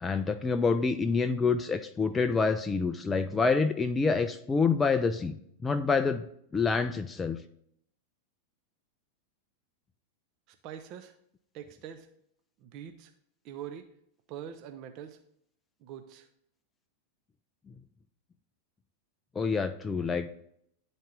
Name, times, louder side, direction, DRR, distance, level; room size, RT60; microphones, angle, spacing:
voice 1, 0.0-5.4 5.6-6.3 6.5-7.4 19.4-20.4, left 4 dB, 15° left, 8 dB, 0.3 m, -27 dB
voice 2, 10.5-11.1 11.5-12.1 12.6-13.1 13.4-13.9 14.3-15.2 15.8-16.3, right 9 dB, 40° right, 8 dB, 0.5 m, -43 dB
10.0 x 4.0 x 3.7 m, 0.71 s
figure-of-eight pair, 90°, 0 cm